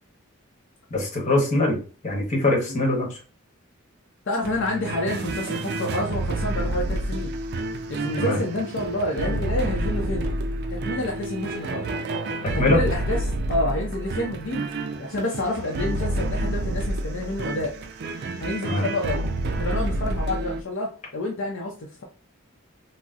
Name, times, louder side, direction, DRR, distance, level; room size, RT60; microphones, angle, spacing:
voice 1, 0.9-3.2 8.2-8.4 12.6-12.8 18.6-18.9, left 2 dB, 35° left, -1 dB, 1.0 m, -23 dB
voice 2, 4.3-7.3 7.9-10.4 10.7-11.8 12.5-13.2 13.5-14.7 15.0-17.7 18.4-19.3 19.6-22.0, left 1 dB, 60° left, -1 dB, 0.6 m, -28 dB
sound 1, 4.4-20.6, right 1 dB, 50° right, 0.4 m, -29 dB
4.0 x 2.0 x 2.3 m, 0.36 s
head